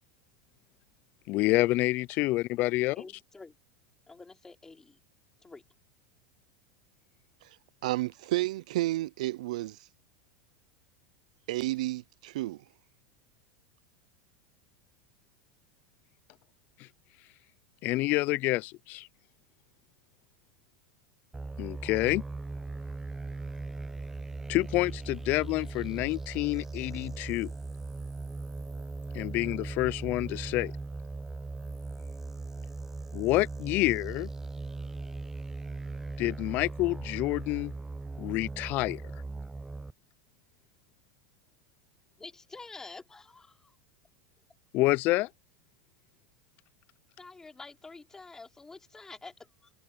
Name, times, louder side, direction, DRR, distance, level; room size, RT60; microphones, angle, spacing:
voice 1, 1.3-3.0 16.8-16.9 17.8-19.1 21.6-22.2 24.5-27.5 29.1-30.7 33.1-34.3 36.2-37.7 38.2-39.0 44.7-45.3, left 20 dB, 50° left, 0.5 m, -28 dB
voice 2, 2.9-3.6 4.1-5.0 5.4-5.6 42.2-43.7 47.2-49.7, left 3 dB, 15° left, 3.4 m, -48 dB
voice 3, 7.8-9.8 11.5-12.6, right 17 dB, 75° right, 0.6 m, -31 dB
sound 1, 21.3-39.9, right 3 dB, 10° right, 0.4 m, -39 dB
hypercardioid pair, 105°, 4 cm